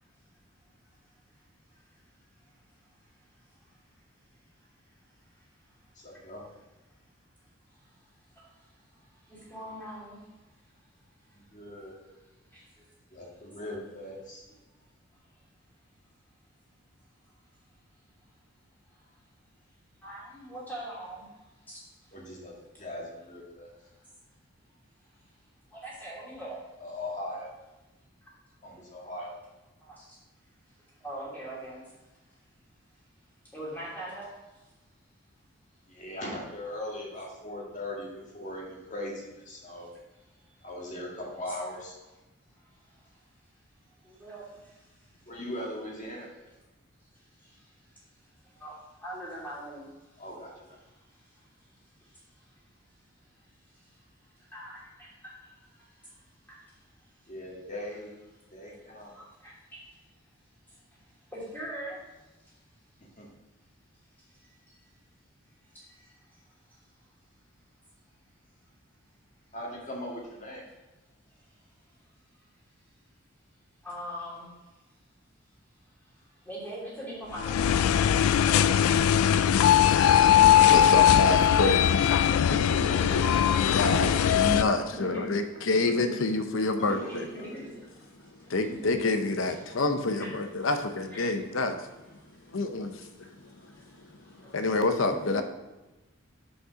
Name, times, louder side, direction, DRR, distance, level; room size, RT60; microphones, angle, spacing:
voice 1, 6.0-6.4 11.3-12.0 13.1-14.4 22.1-22.5 22.8-23.7 26.8-27.5 28.6-29.3 35.9-39.9 40.6-42.0 45.3-46.3 50.2-50.8 57.3-58.1 58.5-59.1 63.2-63.3 69.5-70.6 78.3-78.9 82.2-82.9 83.5-83.6 86.8-87.5, left 1 dB, 35° left, -2 dB, 1.8 m, -39 dB
voice 2, 9.3-10.2 20.0-21.3 21.7-21.8 25.7-26.6 29.9-30.0 31.0-31.8 33.5-34.3 44.0-44.4 48.6-48.7 49.0-49.8 54.5-54.8 59.4-59.5 61.3-62.0 73.8-74.5 76.5-77.8 80.1-80.9 82.6-83.4 84.0-84.3 84.9-85.3 85.8-86.2 86.8-87.7 88.6-88.9 90.2-90.3 91.1-91.3 94.4-95.4, equal, 10° left, -7 dB, 2.7 m, -40 dB
sound 1, 77.4-84.6, left 9 dB, 90° left, 0.3 m, -21 dB
voice 3, 79.8-80.3 80.7-82.0 83.7-87.3 88.5-91.9 92.5-93.1 93.4-93.8 94.0-95.4, left 3 dB, 70° left, 8 dB, 0.7 m, -28 dB
6.5 x 5.4 x 4.9 m, 1.1 s
head